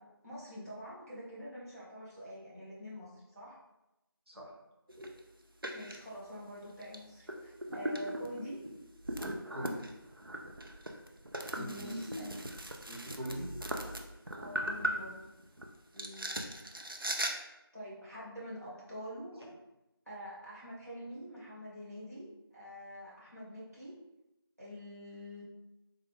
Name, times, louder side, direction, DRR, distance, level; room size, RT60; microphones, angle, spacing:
voice 1, 0.0-3.6 5.7-8.6 11.5-12.4 14.4-15.2 17.7-19.3 20.1-23.9 24.6-25.4, equal, 40° right, -9 dB, 1.5 m, -46 dB
sound 1, 4.9-5.2 5.6-6.0 6.8-7.0 7.3-15.7 16.0-17.3, right 1 dB, 60° right, 0.5 m, -39 dB
voice 2, 9.5-9.9 11.6-12.4 12.9-13.6 15.9-16.5 19.3-19.5, equal, 80° right, -2 dB, 1.1 m, -42 dB
3.8 x 2.7 x 3.5 m, 0.95 s
figure-of-eight pair, 180°, 13 cm